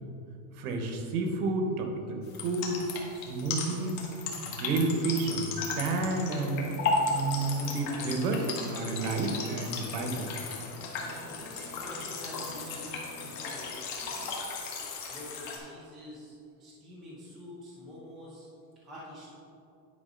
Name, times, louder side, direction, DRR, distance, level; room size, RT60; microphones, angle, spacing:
voice 1, 0.6-2.9 3.3-4.0 4.4-6.7 7.1-10.3, right 3 dB, 65° right, 4 dB, 1.2 m, -30 dB
sound 1, 2.3-15.6, left 4 dB, 45° left, 1.4 m, -35 dB
Bowed string instrument, 6.2-13.6, left 1 dB, 85° left, 1.5 m, -47 dB
voice 2, 10.8-18.5 18.8-19.4, left 1 dB, ahead, -9 dB, 0.4 m, -48 dB
9.9 x 5.1 x 3.9 m, 2.7 s
supercardioid pair, 175°, 47 cm